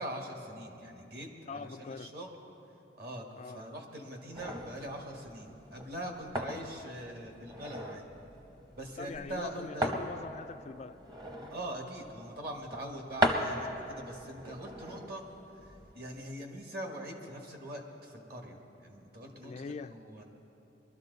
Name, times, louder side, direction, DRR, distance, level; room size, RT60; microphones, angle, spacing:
voice 1, 0.0-2.3 3.0-8.1 8.8-9.9 11.5-15.2 15.5-19.5 19.8-20.2, right 1 dB, 50° right, 2 dB, 1.6 m, -42 dB
voice 2, 1.5-2.1 3.4-3.6 9.0-11.0 19.4-19.9, left 4 dB, 35° left, 11 dB, 0.3 m, -43 dB
sound 1, 4.3-16.2, right 1 dB, 20° right, 0.8 m, -38 dB
22.0 x 12.5 x 4.0 m, 3.0 s
head